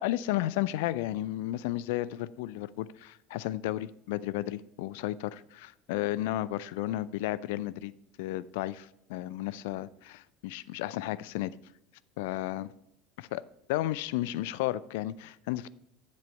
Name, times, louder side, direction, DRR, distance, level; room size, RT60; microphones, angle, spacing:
voice 1, 0.0-7.9 8.2-11.5 12.2-12.7 13.2-13.4 13.7-15.7, left 15 dB, 60° left, 18 dB, 0.3 m, -33 dB
8.4 x 7.5 x 4.6 m, 0.84 s
figure-of-eight pair, 70°, 0 cm